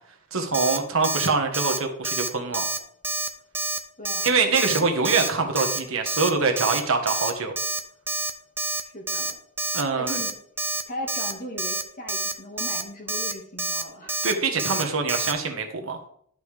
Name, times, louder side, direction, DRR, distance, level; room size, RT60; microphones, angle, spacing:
voice 1, 0.3-2.6 4.2-7.5 9.7-10.2 14.2-16.1, right 4 dB, 65° right, 4 dB, 1.4 m, -24 dB
Alarm, 0.5-0.8 1.0-1.3 1.5-1.8 2.0-2.3 2.5-2.8 3.0-3.3 3.5-3.8 4.0-4.3 4.6-4.8 5.0-5.3 5.5-5.8 6.1-6.3 6.6-6.8 7.1-7.3 7.6-7.8 8.1-8.3 8.6-8.8 9.1-9.3 9.6-9.8 10.1-10.3 10.6-10.8 11.1-11.3 11.6-11.8 12.1-12.3 12.6-12.8 13.1-13.3 13.6-13.8 14.1-14.3 14.6-14.8 15.1-15.3, right 2 dB, 10° right, 0.5 m, -28 dB
voice 2, 4.0-4.9 8.8-9.4 10.0-10.3 10.9-14.2, equal, 40° left, 1 dB, 1.8 m, -38 dB
11.5 x 5.4 x 3.4 m, 0.66 s
head